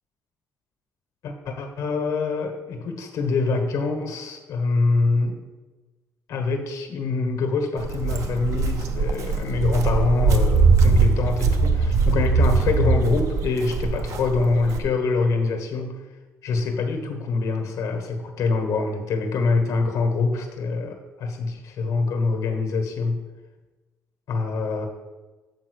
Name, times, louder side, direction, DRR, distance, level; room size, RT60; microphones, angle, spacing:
voice 1, 1.2-5.4 6.3-16.0 16.4-23.2 24.3-24.9, left 3 dB, 70° left, 5 dB, 1.4 m, -25 dB
Walk footsteps, 7.8-14.8, right 4 dB, 60° right, 0.8 m, -21 dB
7.5 x 4.4 x 6.5 m, 1.2 s
cardioid pair, 120°, 6 cm